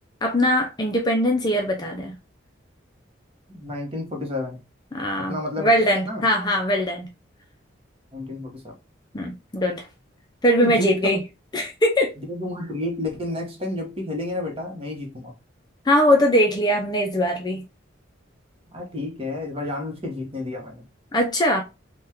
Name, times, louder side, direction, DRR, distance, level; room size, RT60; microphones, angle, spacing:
voice 1, 0.2-2.1 4.9-7.1 9.1-9.9 10.4-11.2 11.5-12.1 15.9-17.6 21.1-21.6, equal, 20° left, 0.4 m, -21 dB
voice 2, 3.5-4.6 5.2-5.8 6.1-6.2 8.1-8.7 10.6-11.2 12.2-15.3 18.7-20.9, left 1 dB, 30° right, 0.9 m, -31 dB
3.5 x 2.3 x 2.8 m
head